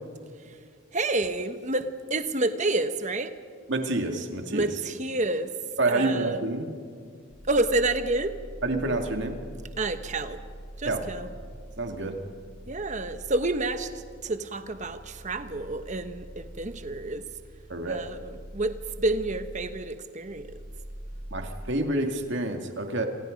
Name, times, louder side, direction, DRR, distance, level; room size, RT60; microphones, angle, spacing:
voice 1, 0.9-3.4 4.5-5.5 5.9-6.5 7.5-8.4 9.8-10.4 10.8-11.3 12.7-17.3 17.9-20.6, right 2 dB, 35° right, 9 dB, 1.2 m, -29 dB
voice 2, 3.7-4.7 5.8-6.7 8.6-9.4 10.8-11.0 11.8-12.2 17.7-18.0 21.3-23.1, right 2 dB, 60° right, 4 dB, 2.3 m, -28 dB
sound 1, 7.3-21.7, right 1 dB, 30° left, 5.7 m, -44 dB
28.5 x 27.0 x 5.3 m, 2.1 s
head